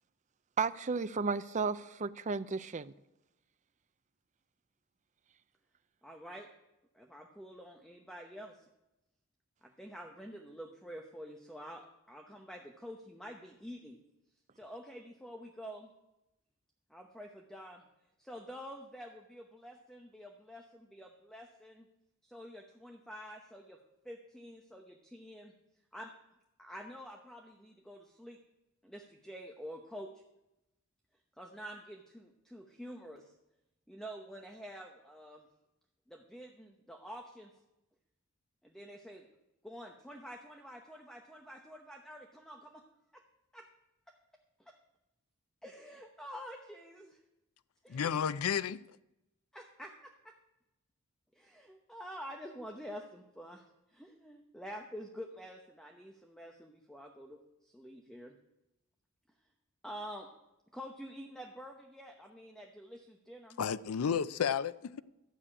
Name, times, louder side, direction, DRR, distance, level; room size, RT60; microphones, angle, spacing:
voice 1, 0.6-2.9, right 4 dB, 35° right, 0.5 m, -33 dB
voice 2, 6.0-6.5 6.9-8.6 9.6-14.0 14.6-15.9 16.9-17.8 18.2-21.9 22.2-25.5 25.9-26.1 26.6-28.4 28.8-30.2 31.4-33.3 33.9-35.5 36.1-37.5 38.6-39.3 39.6-42.8 43.1-43.2 43.5-43.7 44.6-44.7 45.6-47.2 47.8-48.2 49.5-50.4 51.3-53.6 53.9-58.3 59.8-60.3 60.7-63.6, equal, 5° left, 0.8 m, -48 dB
voice 3, 47.9-48.8 63.6-65.0, left 7 dB, 90° left, 0.5 m, -32 dB
12.5 x 6.7 x 8.7 m
head